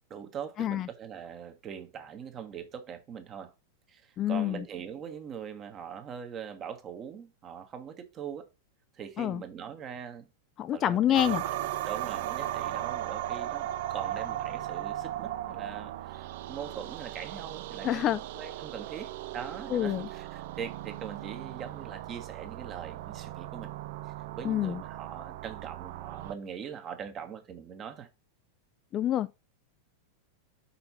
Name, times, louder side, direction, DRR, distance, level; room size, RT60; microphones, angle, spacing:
voice 1, 0.1-3.5 3.9-8.5 8.9-10.3 10.7-11.3 11.8-23.7 24.0-28.1, right 7 dB, 30° right, 1.2 m, -42 dB
voice 2, 4.2-4.6 9.2-9.4 10.6-11.4 17.8-18.2 19.7-20.1 24.4-24.8 28.9-29.3, left 11 dB, 30° left, 0.3 m, -27 dB
sound 1, 11.1-26.3, right 13 dB, 50° right, 0.3 m, -37 dB
5.6 x 4.5 x 4.1 m
figure-of-eight pair, 90°, 0 cm